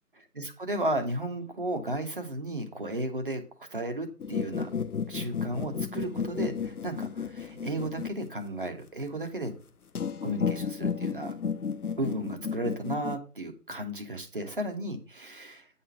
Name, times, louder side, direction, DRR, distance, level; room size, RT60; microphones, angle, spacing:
voice 1, 0.2-4.7 5.1-9.5 10.2-11.4 12.0-15.7, right 1 dB, 35° right, 4 dB, 1.2 m, -34 dB
sound 1, 4.2-8.7 10.0-13.2, left 6 dB, 65° left, 0.7 m, -33 dB
9.2 x 4.3 x 5.9 m, 0.36 s
figure-of-eight pair, 160°, 48 cm